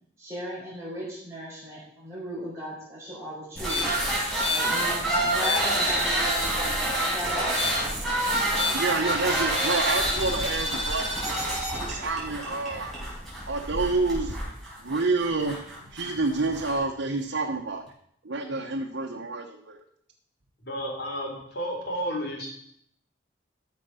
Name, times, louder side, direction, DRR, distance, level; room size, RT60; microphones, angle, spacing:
voice 1, 0.2-3.9 4.5-7.5 8.2-8.7, equal, 15° right, -7 dB, 4.9 m, -36 dB
sound 1, 3.6-16.8, right 1 dB, ahead, 4.5 m, -27 dB
voice 2, 8.7-11.1 11.9-12.9 13.5-14.4 14.8-15.6 15.9-17.9 18.2-19.8, right 3 dB, 80° right, 0 dB, 1.1 m, -28 dB
voice 3, 20.6-22.5, equal, 60° left, 1 dB, 3.4 m, -32 dB
13.5 x 6.6 x 5.7 m, 0.69 s
head